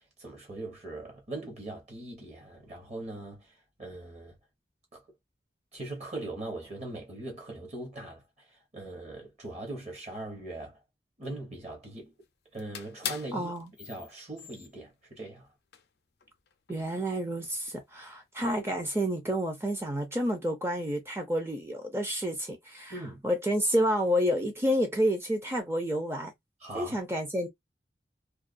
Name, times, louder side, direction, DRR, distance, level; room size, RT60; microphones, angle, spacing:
voice 1, 0.0-4.4 4.9-5.0 5.7-10.8 11.2-12.1 12.5-13.5 13.8-15.5 22.9-23.2 26.6-27.0, right 2 dB, 40° right, 0.9 m, -41 dB
sound 1, 12.1-12.2 12.5-15.3 15.7-15.9 16.2-17.9 18.4-18.8, left 8 dB, 65° left, 0.4 m, -42 dB
voice 2, 13.3-13.7 16.7-22.9 23.2-26.3 26.8-27.5, equal, 15° right, 0.5 m, -29 dB
2.3 x 2.2 x 2.4 m
head